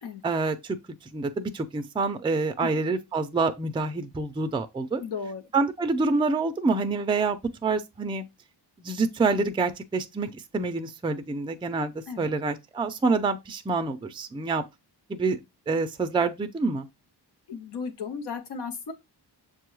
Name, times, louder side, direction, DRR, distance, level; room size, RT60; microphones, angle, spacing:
voice 1, 0.2-0.6 1.1-5.0 5.5-8.2 8.8-11.9 12.2-14.6 15.1-15.4 15.7-16.9, right 3 dB, 15° right, 0.4 m, -27 dB
voice 2, 5.0-5.4 12.1-12.3 17.5-18.9, left 5 dB, 75° left, 0.7 m, -35 dB
6.6 x 2.3 x 3.0 m
wide cardioid pair, 125°, 41 cm